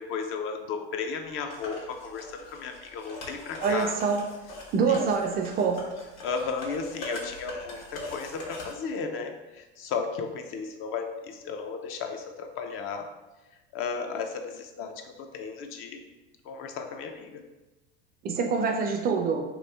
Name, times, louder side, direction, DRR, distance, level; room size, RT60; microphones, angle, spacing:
voice 1, 0.0-4.0 4.9-5.0 6.2-13.1 13.7-16.1 16.4-17.4, left 5 dB, 45° left, 5 dB, 0.5 m, -34 dB
sound 1, 1.5-8.7, left 2 dB, 70° left, 1.2 m, -41 dB
voice 2, 3.6-4.2 4.7-5.8 18.2-19.4, right 5 dB, 30° right, 4 dB, 0.4 m, -25 dB
3.1 x 2.6 x 3.3 m, 1.1 s
supercardioid pair, 105°, 30 cm